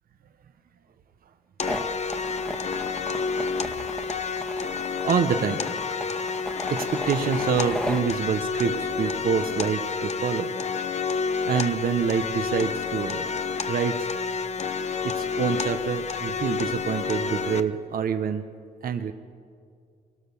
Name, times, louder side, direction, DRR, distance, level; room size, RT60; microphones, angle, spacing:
sound 1, 1.6-17.6, left 5 dB, 45° left, 0.9 m, -29 dB
sound 2, 1.6-8.0, equal, 5° left, 1.4 m, -35 dB
voice 1, 2.1-2.5 3.0-4.1 5.0-5.6 6.7-10.5 11.5-13.3 13.6-14.1 15.0-18.4 18.8-19.1, right 7 dB, 60° right, 8 dB, 1.1 m, -27 dB
23.5 x 18.0 x 7.1 m, 2.2 s
cardioid pair, 115°, 16 cm